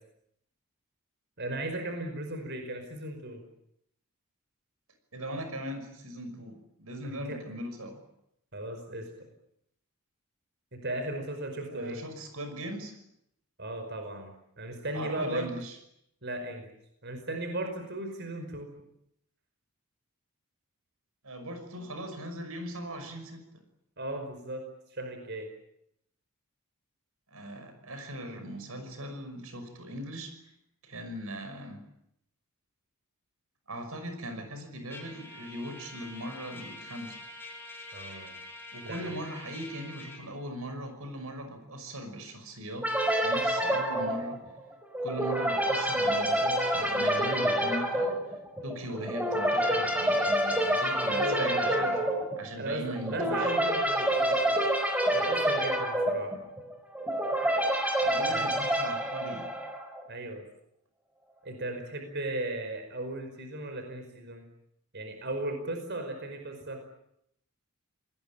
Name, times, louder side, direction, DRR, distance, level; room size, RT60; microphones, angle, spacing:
voice 1, 1.4-3.4 7.0-7.4 8.5-9.1 10.7-12.0 13.6-15.5 16.2-16.7 17.0-18.7 24.0-25.5 37.9-38.3 38.8-39.2 51.1-52.1 52.6-54.5 55.1-56.3 58.3-58.5 60.1-60.5 61.4-64.5 64.9-66.8, right 1 dB, 50° right, 5 dB, 5.1 m, -36 dB
voice 2, 5.1-8.0 11.7-13.0 14.9-15.8 21.2-23.4 27.3-30.3 30.8-31.8 33.7-37.2 38.7-42.9 43.2-44.4 45.0-48.4 48.6-51.9 52.4-53.5 58.0-59.5, right 1 dB, 75° right, 7 dB, 5.9 m, -39 dB
Trumpet, 34.9-40.2, left 2 dB, 10° left, 5.9 m, -46 dB
sound 1, 42.8-60.0, right 1 dB, 5° right, 4.5 m, -28 dB
28.0 x 20.5 x 8.8 m, 0.77 s
head